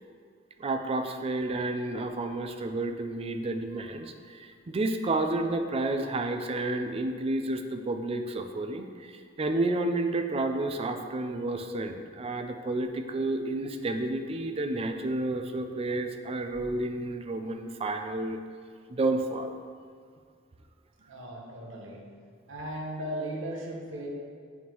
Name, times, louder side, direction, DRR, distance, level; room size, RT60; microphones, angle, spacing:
voice 1, 0.6-18.4 18.9-19.5, right 2 dB, 30° right, 6 dB, 0.4 m, -31 dB
voice 2, 21.0-22.0 22.5-24.1, right 1 dB, 80° right, -2 dB, 1.1 m, -37 dB
9.3 x 3.6 x 3.0 m, 2.1 s
head